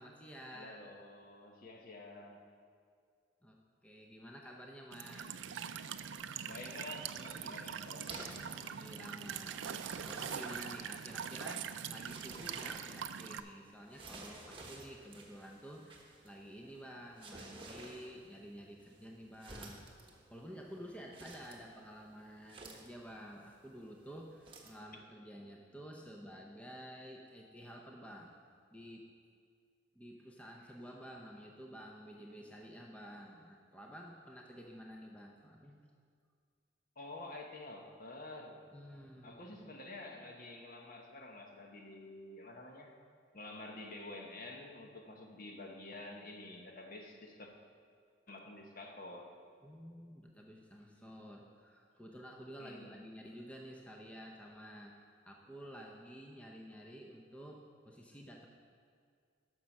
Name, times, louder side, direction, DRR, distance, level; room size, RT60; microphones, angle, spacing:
voice 1, 0.0-0.8 3.4-5.4 8.4-16.0 16.2-19.9 20.3-28.3 28.7-29.0 30.0-35.8 38.7-39.4 40.1-40.2 49.6-58.5, equal, 5° left, 0 dB, 0.6 m, -51 dB
voice 2, 0.5-2.4 6.4-8.3 37.0-38.6 39.2-42.9 43.3-47.5 48.3-49.3 52.6-53.1, left 2 dB, 45° left, 2 dB, 1.0 m, -49 dB
Walk footsteps / Chirp tweet / Stream, 4.9-13.4, right 8 dB, 75° right, 0.4 m, -43 dB
sound 1, 7.0-24.8, right 2 dB, 25° right, 1.1 m, -54 dB
9.5 x 6.3 x 5.9 m, 2.2 s
head